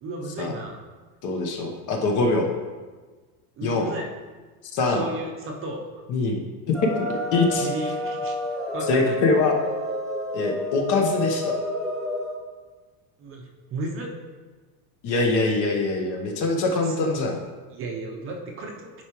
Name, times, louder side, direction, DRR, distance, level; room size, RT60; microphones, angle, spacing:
voice 1, 0.0-0.8 3.6-4.1 4.9-6.0 7.6-8.4 8.7-9.2 13.2-14.1 16.7-16.9 17.7-18.9, right 2 dB, 30° right, 1 dB, 0.8 m, -34 dB
voice 2, 1.2-2.5 3.6-3.9 4.7-5.0 6.1-6.4 6.8-7.7 8.9-9.6 10.3-11.6 15.0-17.4, left 3 dB, 40° left, 2 dB, 1.1 m, -23 dB
sound 1, 6.7-12.4, equal, ahead, 0.3 m, -29 dB
10.0 x 4.8 x 3.0 m, 1.3 s
supercardioid pair, 150°, 45 cm